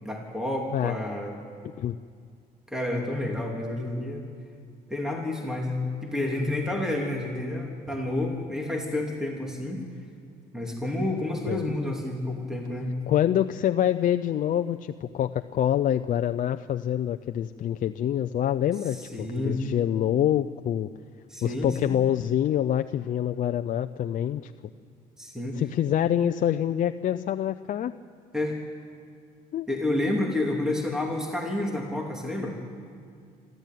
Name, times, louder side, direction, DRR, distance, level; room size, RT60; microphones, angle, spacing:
voice 1, 0.0-1.4 2.7-4.2 4.9-9.8 10.5-13.0 18.9-19.6 21.3-22.0 25.2-25.6 28.3-28.6 29.7-32.6, left 1 dB, 5° right, 0 dB, 3.0 m, -30 dB
voice 2, 13.1-20.9 21.4-24.5 25.6-27.9 29.5-29.7, left 10 dB, 50° left, 8 dB, 0.6 m, -26 dB
26.0 x 13.5 x 9.3 m, 2.2 s
cardioid pair, 110°, 17 cm